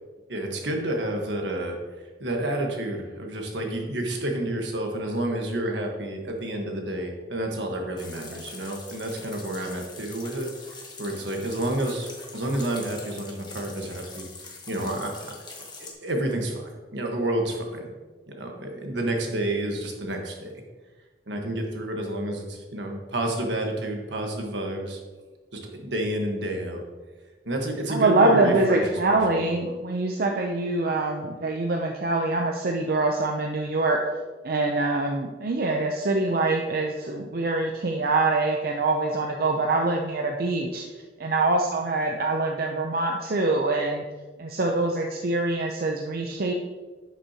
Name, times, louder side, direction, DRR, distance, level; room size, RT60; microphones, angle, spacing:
voice 1, 0.3-1.7 2.2-10.5 11.0-12.1 12.3-14.2 14.7-15.1 15.8-17.9 18.4-20.5 21.3-25.0 25.5-26.8 27.4-28.8 29.1-29.5, right 1 dB, 75° right, 2 dB, 1.4 m, -29 dB
sound 1, 8.0-15.9, left 4 dB, 25° left, 1.1 m, -43 dB
voice 2, 27.9-34.0 34.4-40.8 41.2-44.0 44.4-46.5, right 2 dB, 55° right, 1 dB, 0.6 m, -24 dB
11.0 x 6.0 x 2.9 m, 1.3 s
head